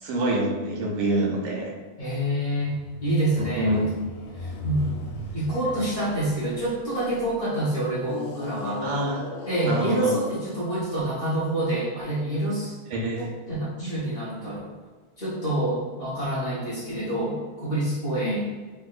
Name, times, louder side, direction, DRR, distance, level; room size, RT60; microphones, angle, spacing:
voice 1, 0.0-1.7 3.4-3.8 8.8-9.2 9.7-10.1 12.9-13.3, right 1 dB, 90° right, -1 dB, 1.6 m, -26 dB
voice 2, 2.0-2.7 3.0-3.8 4.3-5.0 5.3-8.9 9.4-12.7 13.5-14.6 15.2-18.5, right 1 dB, 45° left, -10 dB, 0.8 m, -27 dB
sound 1, 2.6-7.3 8.0-10.5 11.2-11.4, left 2 dB, 75° left, 1.3 m, -37 dB
3.6 x 2.6 x 2.3 m, 1.4 s
omnidirectional pair, 2.4 m